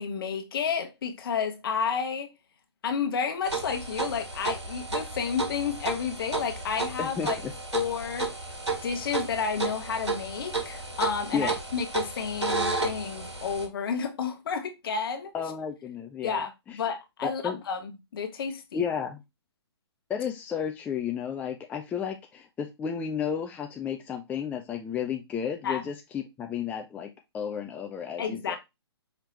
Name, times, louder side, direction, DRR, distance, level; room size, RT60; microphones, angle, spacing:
voice 1, 0.0-2.3 2.8-7.4 7.7-8.3 8.8-15.3 16.2-18.8 25.6-25.9 28.2-28.6, left 6 dB, 55° left, 1.1 m, -31 dB
sound 1, 3.4-13.7, right 3 dB, 90° right, 1.4 m, -33 dB
voice 2, 7.0-7.5 11.3-11.5 15.3-16.4 16.7-16.8 17.2-17.6 18.7-19.2 20.1-28.6, left 7 dB, 10° left, 0.4 m, -32 dB
5.3 x 2.9 x 3.1 m
figure-of-eight pair, 125°, 14 cm